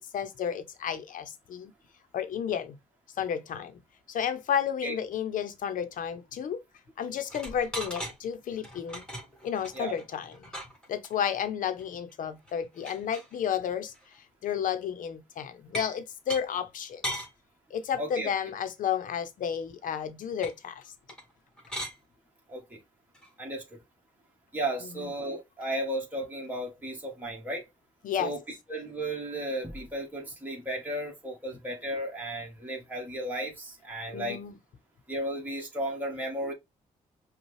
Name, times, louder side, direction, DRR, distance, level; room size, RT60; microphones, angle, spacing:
voice 1, 0.1-1.7 2.1-2.8 3.2-3.8 4.1-6.6 7.0-9.0 9.4-10.4 10.9-13.9 14.4-17.2 17.7-20.8 24.8-25.1 28.0-28.3 34.1-34.6, left 8 dB, 70° left, 0.8 m, -32 dB
sound 1, 7.3-8.2 8.6-11.3 11.8-11.9 12.1-12.2 12.5-13.3 13.9-14.1 15.7-16.0 16.3-16.4 17.0-17.3 20.4-20.5 21.1-21.3 21.6-22.0 23.1-23.3, right 1 dB, 5° left, 1.8 m, -38 dB
voice 2, 18.0-18.3 22.5-22.8 23.4-23.8 24.5-27.6 28.2-28.4 28.7-34.4 35.1-36.5, right 1 dB, 10° right, 1.6 m, -34 dB
5.3 x 2.3 x 3.2 m
cardioid pair, 75°, 14 cm